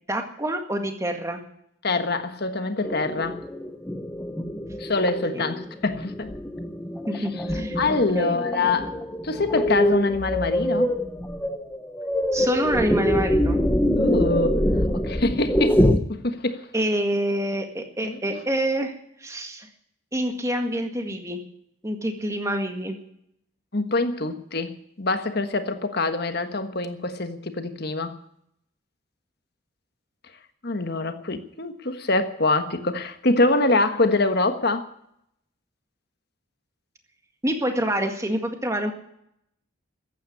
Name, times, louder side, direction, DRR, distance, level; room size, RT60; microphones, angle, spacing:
voice 1, 0.1-1.4 5.3-5.6 7.1-7.8 8.2-8.4 12.3-13.6 16.7-18.9 19.2-19.7 20.1-21.4 21.8-22.9 37.4-38.9, right 1 dB, 15° right, 1.8 m, -26 dB
voice 2, 1.8-3.4 4.8-6.3 7.1-7.3 7.8-9.0 9.2-10.9 14.0-14.6 14.9-15.8 16.1-16.7 18.0-18.4 23.7-28.2 30.6-34.9, left 2 dB, 50° left, 1.4 m, -25 dB
sound 1, 2.8-16.0, equal, 10° left, 1.0 m, -25 dB
14.5 x 9.2 x 9.8 m
head